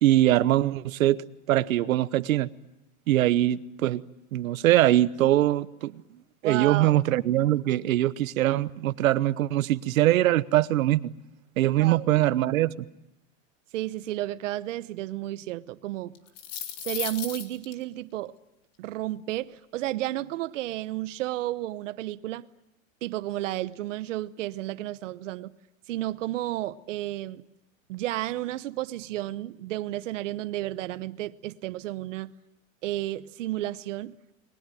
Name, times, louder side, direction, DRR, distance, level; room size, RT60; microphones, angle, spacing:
voice 1, 0.0-1.2 1.5-2.5 3.1-4.0 4.3-5.9 6.4-11.1 11.6-12.9, right 14 dB, 90° right, 1.1 m, -22 dB
voice 2, 6.4-7.0 11.8-12.1 13.7-16.2 16.8-18.3 18.8-22.5 23.0-25.5 25.9-27.4 27.9-32.3 32.8-34.2, right 15 dB, 65° right, 1.0 m, -32 dB
sound 1, 16.1-17.7, left 10 dB, 50° left, 2.8 m, -35 dB
30.0 x 21.5 x 9.2 m
supercardioid pair, 175°, 40 cm